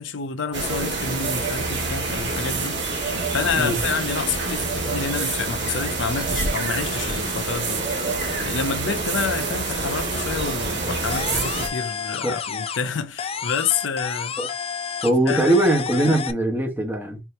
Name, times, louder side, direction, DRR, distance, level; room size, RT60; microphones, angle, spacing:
voice 1, 0.0-2.8 3.3-7.8 8.4-14.4 15.3-15.5, left 5 dB, 75° left, 0.6 m, -28 dB
sound 1, 0.5-11.7, right 3 dB, 65° right, 1.9 m, -26 dB
sound 2, 11.1-12.9 13.2-16.3, left 7 dB, 30° left, 0.4 m, -30 dB
voice 2, 15.0-17.2, right 1 dB, 10° right, 1.2 m, -21 dB
4.6 x 3.0 x 3.3 m
head